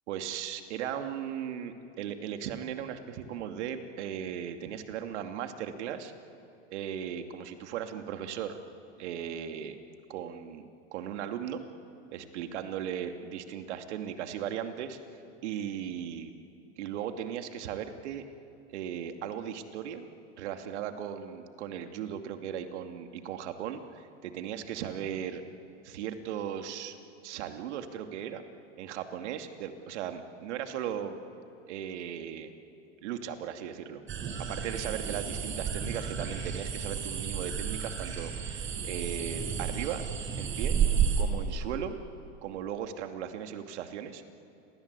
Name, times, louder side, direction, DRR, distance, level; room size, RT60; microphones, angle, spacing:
voice 1, 0.1-6.1 6.7-8.6 9.0-9.8 10.1-11.6 12.1-15.0 15.4-16.3 16.8-18.3 18.7-20.1 20.4-25.4 25.8-26.9 27.2-28.4 28.8-31.2 31.7-32.5 33.0-40.0 40.4-40.8 41.2-42.0 42.4-44.2, right 9 dB, 70° right, 6 dB, 2.7 m, -37 dB
sound 1, 34.1-41.2, right 7 dB, 35° right, 5.8 m, -32 dB
29.5 x 23.0 x 8.4 m, 2.7 s
hypercardioid pair, 110°, 36 cm